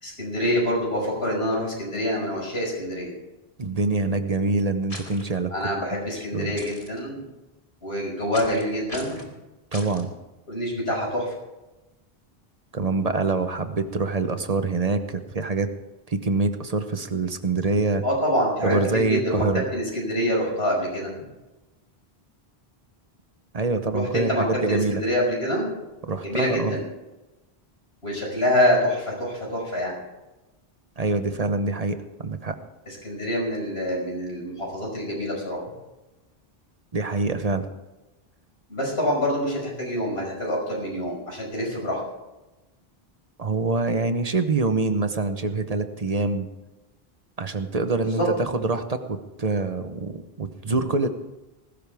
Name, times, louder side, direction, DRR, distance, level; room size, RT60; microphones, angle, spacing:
voice 1, 0.0-3.1 5.5-7.2 7.8-9.2 10.5-11.3 18.0-19.4 19.7-21.1 23.9-25.7 26.2-26.9 28.0-30.0 32.9-35.6 38.7-42.0 47.9-48.3, equal, 75° left, -2 dB, 5.9 m, -26 dB
voice 2, 3.6-5.5 5.8-6.0 6.3-6.5 9.7-10.1 12.7-15.7 16.1-18.0 18.6-19.6 23.5-25.0 26.0-26.8 31.0-32.6 36.9-37.7 43.4-46.5 47.4-51.1, right 3 dB, 40° right, 8 dB, 1.0 m, -25 dB
sound 1, 4.9-5.2 6.6-6.9 8.3-8.6 8.9-9.3 9.7-10.0, left 1 dB, 35° left, 2.2 m, -39 dB
19.0 x 15.5 x 3.5 m, 1.0 s
omnidirectional pair, 1.0 m